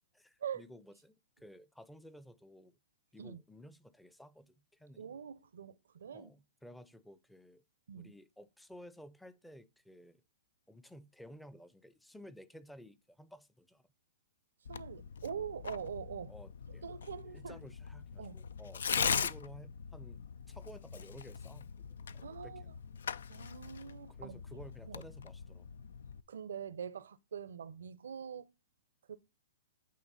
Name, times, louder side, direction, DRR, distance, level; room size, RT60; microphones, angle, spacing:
voice 1, 0.1-2.7 3.1-5.1 6.1-7.6 8.0-10.2 10.7-13.8 16.3-16.8 17.2-20.2 20.5-21.9 22.1-22.7 24.2-25.7, equal, 5° left, 0.5 m, -54 dB
voice 2, 5.0-6.3 7.9-8.1 14.7-16.3 16.7-17.6 18.2-18.4 22.2-22.6 23.3-24.4 24.9-25.0 26.3-28.5 29.1-29.2, right 8 dB, 75° right, 0.6 m, -44 dB
Tearing, 14.6-26.2, left 7 dB, 75° left, 0.4 m, -41 dB
8.5 x 3.2 x 4.0 m
hypercardioid pair, 125°, 0 cm